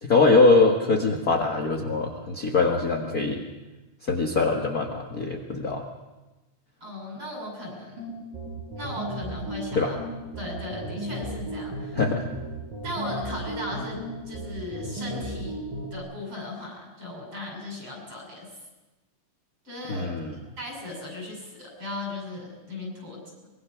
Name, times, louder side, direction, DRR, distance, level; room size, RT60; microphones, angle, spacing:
voice 1, 0.0-3.4 4.1-5.9 9.7-9.9 11.9-12.3 19.9-20.4, left 3 dB, 55° left, 0 dB, 0.9 m, -22 dB
voice 2, 6.8-8.1 8.7-10.0 10.4-11.9 12.8-14.0 14.3-15.5 15.9-18.5 19.6-20.1 20.6-23.2, left 1 dB, 35° right, 0 dB, 8.2 m, -36 dB
sound 1, 8.0-16.0, right 1 dB, 70° right, 7.6 m, -35 dB
24.5 x 22.0 x 6.0 m, 1.1 s
omnidirectional pair, 4.2 m